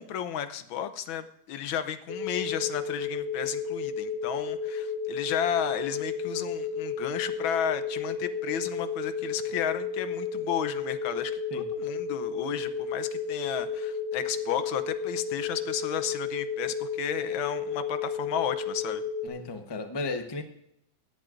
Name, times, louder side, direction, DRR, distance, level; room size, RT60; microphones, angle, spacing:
voice 1, 0.0-19.0, left 9 dB, 85° left, 11 dB, 1.6 m, -33 dB
sound 1, 2.1-19.3, left 5 dB, 65° left, 2.2 m, -32 dB
voice 2, 19.2-20.4, left 3 dB, 25° left, 7 dB, 0.5 m, -34 dB
17.0 x 11.0 x 2.5 m, 0.76 s
omnidirectional pair, 2.1 m